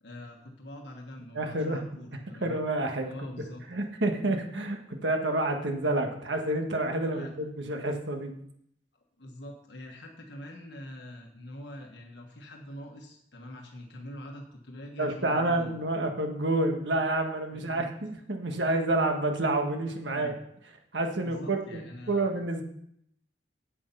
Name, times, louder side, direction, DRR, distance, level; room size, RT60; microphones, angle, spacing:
voice 1, 0.0-2.5 3.0-3.6 7.1-7.3 9.2-15.7 17.5-17.8 20.1-20.4 21.2-22.3, left 1 dB, 75° left, 1 dB, 1.4 m, -44 dB
voice 2, 1.3-1.8 2.4-3.1 3.7-8.3 15.0-20.3 20.9-21.8 22.1-22.6, right 2 dB, 85° right, 4 dB, 1.5 m, -28 dB
8.7 x 8.2 x 5.5 m, 0.71 s
head